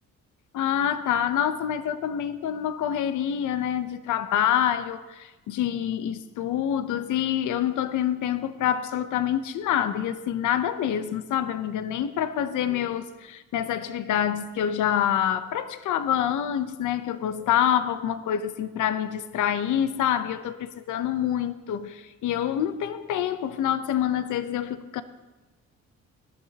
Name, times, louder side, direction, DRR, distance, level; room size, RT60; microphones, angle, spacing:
voice 1, 0.5-25.0, left 10 dB, 80° left, 0.8 m, -26 dB
19.0 x 12.5 x 2.9 m
cardioid pair, 90°, 30 cm